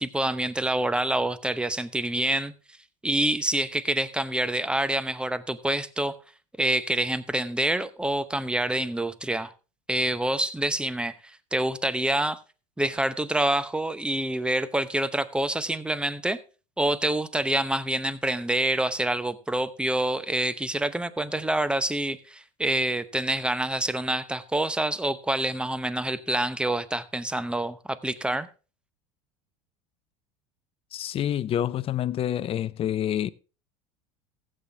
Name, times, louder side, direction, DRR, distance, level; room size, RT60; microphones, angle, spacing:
voice 1, 0.0-2.5 3.0-6.1 6.6-9.5 9.9-11.2 11.5-12.4 12.8-16.4 16.8-28.5, right 1 dB, 5° right, 0.8 m, -27 dB
voice 2, 30.9-33.3, left 11 dB, 35° left, 0.5 m, -27 dB
15.5 x 7.7 x 3.4 m
hypercardioid pair, 85°, 17 cm